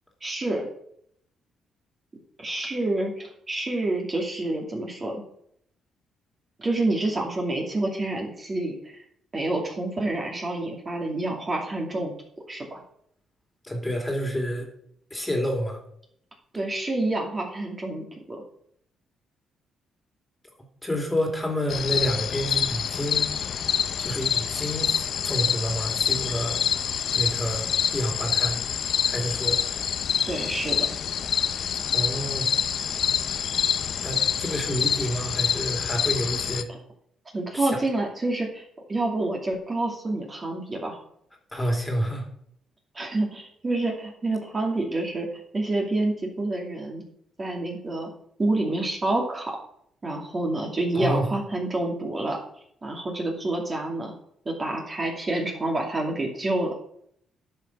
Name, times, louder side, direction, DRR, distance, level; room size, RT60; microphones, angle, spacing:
voice 1, 0.2-0.7 2.4-5.2 6.6-9.0 9.3-12.1 12.5-12.8 16.5-18.4 30.3-30.9 36.7-36.8 37.3-38.6 38.9-41.0 42.9-45.3 45.5-47.0 47.4-48.1 48.4-49.6 50.0-52.4 52.8-54.1 54.5-56.9, right 2 dB, 30° right, 0 dB, 2.5 m, -28 dB
voice 2, 13.6-14.7 15.1-15.8 20.8-23.3 24.0-26.6 27.1-28.6 29.0-29.6 31.9-32.5 34.0-36.7 37.5-37.8 41.5-42.3 50.9-51.3, equal, 10° left, 2 dB, 2.8 m, -29 dB
sound 1, 21.7-36.6, left 8 dB, 60° left, 0.7 m, -26 dB
10.5 x 5.6 x 6.1 m, 0.69 s
cardioid pair, 90°, 0 cm